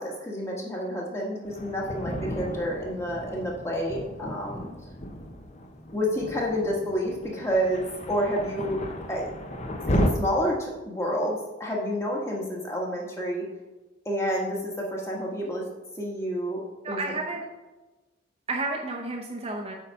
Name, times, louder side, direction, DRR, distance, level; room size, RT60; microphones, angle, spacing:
voice 1, 0.0-4.6 5.9-8.8 9.1-9.3 9.9-13.5 14.0-15.6 16.0-17.2, equal, 15° left, -2 dB, 1.4 m, -29 dB
Thunder, 1.4-10.1, equal, 35° left, 0.7 m, -34 dB
voice 2, 16.8-17.5 18.5-19.7, right 2 dB, 30° right, 0 dB, 0.7 m, -31 dB
8.3 x 4.0 x 5.5 m, 1.1 s
head